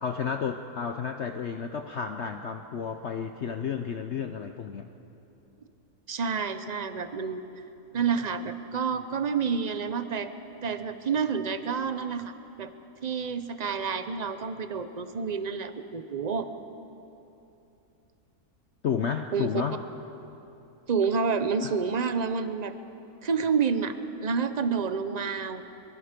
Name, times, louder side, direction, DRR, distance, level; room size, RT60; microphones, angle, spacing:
voice 1, 0.0-4.9 18.8-19.8 21.6-21.7, left 7 dB, 55° left, 6 dB, 0.8 m, -31 dB
voice 2, 6.1-7.4 7.9-10.3 10.6-12.7 13.0-16.5 19.3-19.5 20.9-22.8 23.2-24.0 24.2-25.6, right 5 dB, 40° right, 10 dB, 0.6 m, -29 dB
23.5 x 23.0 x 5.2 m, 2.9 s
omnidirectional pair, 1.7 m